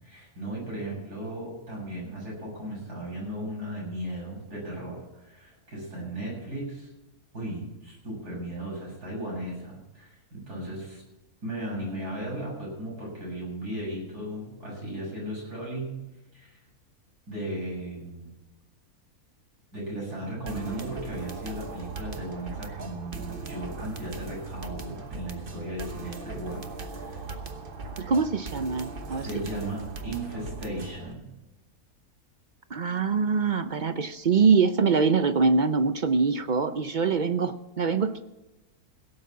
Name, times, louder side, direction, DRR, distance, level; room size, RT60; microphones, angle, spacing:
voice 1, 0.0-6.9 7.3-11.0 11.4-16.0 16.3-16.6 17.3-18.3 19.7-27.3 29.1-31.3, right 1 dB, 85° right, -3 dB, 7.9 m, -36 dB
sound 1, 20.5-31.1, right 3 dB, 40° right, 1.2 m, -39 dB
voice 2, 28.0-29.3 32.7-38.2, right 5 dB, 60° right, 11 dB, 0.5 m, -24 dB
17.0 x 8.3 x 7.4 m, 1.0 s
omnidirectional pair, 1.6 m